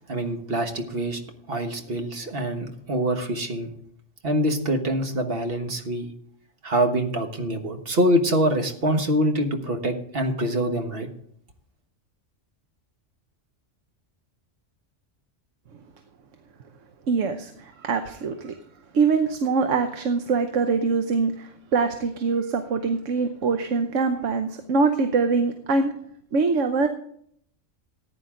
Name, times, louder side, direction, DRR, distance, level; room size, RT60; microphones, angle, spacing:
voice 1, 0.1-1.2 1.5-3.7 4.2-6.1 6.6-11.1, equal, 50° right, 5 dB, 1.6 m, -25 dB
voice 2, 17.1-18.5 18.9-25.9 26.3-26.9, right 4 dB, 85° right, 7 dB, 1.2 m, -23 dB
14.5 x 9.8 x 3.8 m, 0.65 s
omnidirectional pair, 1.3 m